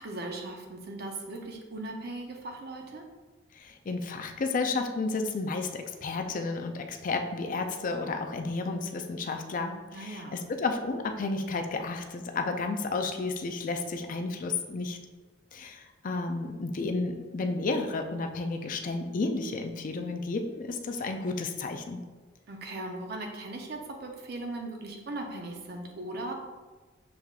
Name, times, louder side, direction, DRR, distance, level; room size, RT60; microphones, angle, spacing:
voice 1, 0.0-3.1 9.9-10.4 22.5-26.3, right 2 dB, 55° right, 2 dB, 0.7 m, -38 dB
voice 2, 3.5-15.0 15.5-22.0, left 3 dB, 45° left, 5 dB, 0.4 m, -32 dB
6.2 x 3.4 x 2.4 m, 1.3 s
head